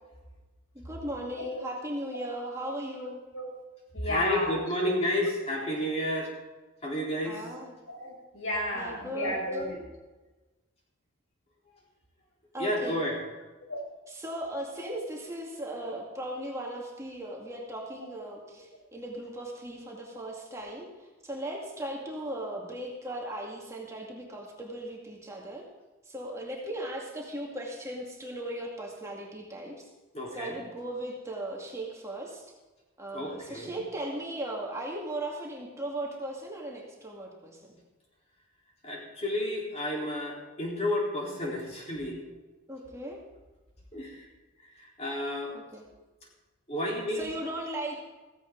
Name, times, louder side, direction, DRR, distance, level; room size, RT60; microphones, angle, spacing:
voice 1, 0.7-3.2 7.2-7.8 8.8-9.3 12.5-13.0 14.1-20.9 21.2-25.6 26.1-29.9 30.3-32.5 33.0-37.8 42.7-43.2 45.5-45.8 47.1-48.0, right 1 dB, 15° right, -2 dB, 2.1 m, -37 dB
voice 2, 3.0-3.5 3.9-4.6 7.9-9.8 13.7-13.8, left 1 dB, 80° left, 0 dB, 5.7 m, -33 dB
voice 3, 4.0-6.3 6.8-7.4 12.6-13.2 30.1-30.6 33.1-33.7 38.8-42.2 43.9-44.2 44.8-45.5 46.7-47.3, left 1 dB, 30° left, -3 dB, 4.0 m, -31 dB
16.0 x 15.5 x 3.9 m, 1.2 s
head